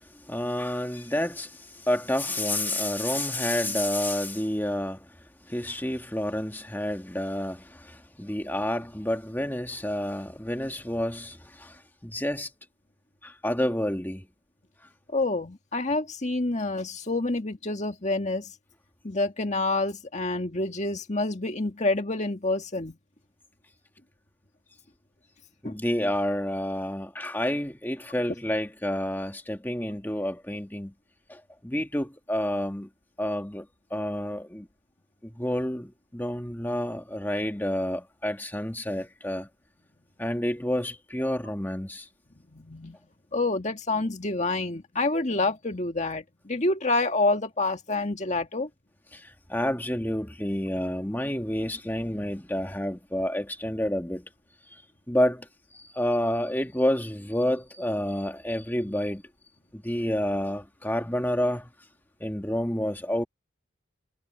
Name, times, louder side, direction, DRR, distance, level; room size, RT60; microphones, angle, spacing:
voice 1, 0.3-1.5 1.9-5.0 5.5-7.6 8.2-11.4 12.0-12.5 13.2-14.2 25.6-30.9 31.6-32.9 33.2-33.6 33.9-34.6 35.4-35.9 36.1-39.5 40.2-42.0 49.5-54.2 55.1-55.4 55.9-59.2 59.8-61.6 62.2-63.2, left 1 dB, 10° left, 1.7 m, -29 dB
voice 2, 15.1-18.5 19.0-23.0 25.6-25.8 42.5-43.0 43.3-48.7, left 2 dB, 35° left, 1.8 m, -28 dB
head